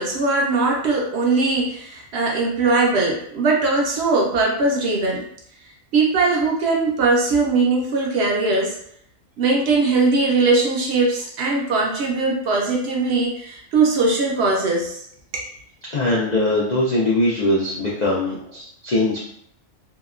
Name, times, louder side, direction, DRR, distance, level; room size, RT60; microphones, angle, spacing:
voice 1, 0.0-5.2 5.9-8.8 9.4-15.1, right 3 dB, 65° right, -1 dB, 0.7 m, -20 dB
voice 2, 15.9-19.2, left 1 dB, 80° left, -5 dB, 0.3 m, -21 dB
2.8 x 2.1 x 2.3 m, 0.69 s
omnidirectional pair, 1.4 m